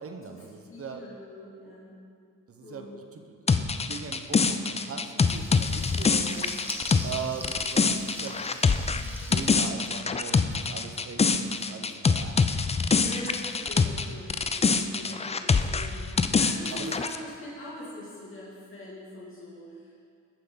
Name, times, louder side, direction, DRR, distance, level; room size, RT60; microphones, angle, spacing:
voice 1, 0.0-1.0 2.5-6.8 7.0-12.4 15.0-15.2 16.7-16.9, right 6 dB, 45° right, 5 dB, 0.8 m, -40 dB
voice 2, 0.7-2.0 2.6-3.0 13.0-20.0, left 1 dB, 40° left, -7 dB, 2.2 m, -43 dB
sound 1, 3.5-14.0 14.3-17.2, left 4 dB, 20° left, 0.4 m, -25 dB
Water tap faucet / Liquid, 5.2-10.7, right 1 dB, 5° right, 1.1 m, -43 dB
14.5 x 5.6 x 3.8 m, 2.3 s
cardioid pair, 70°, 32 cm